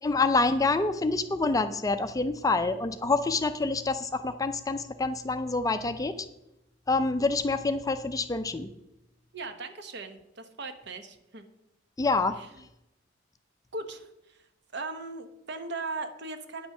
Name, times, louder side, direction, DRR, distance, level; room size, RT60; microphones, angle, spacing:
voice 1, 0.0-6.3 6.9-8.7 12.0-12.4, left 3 dB, 15° left, 10 dB, 0.4 m, -27 dB
voice 2, 9.3-11.4 12.4-12.5 13.7-14.5 14.7-16.7, right 3 dB, 60° right, 9 dB, 0.9 m, -38 dB
9.6 x 6.0 x 6.5 m, 0.89 s
head